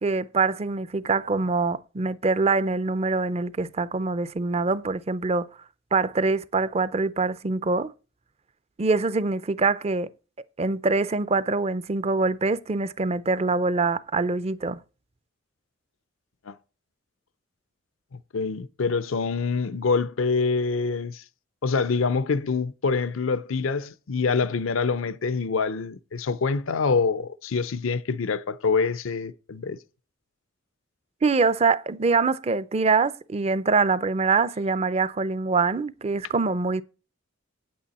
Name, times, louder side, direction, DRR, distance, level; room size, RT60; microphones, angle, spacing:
voice 1, 0.0-5.5 5.9-7.9 8.8-10.1 10.6-14.8 31.2-36.8, right 4 dB, 30° right, 0.5 m, -24 dB
voice 2, 18.3-21.2 21.6-29.8, left 4 dB, 80° left, 0.6 m, -25 dB
8.9 x 8.6 x 4.1 m
head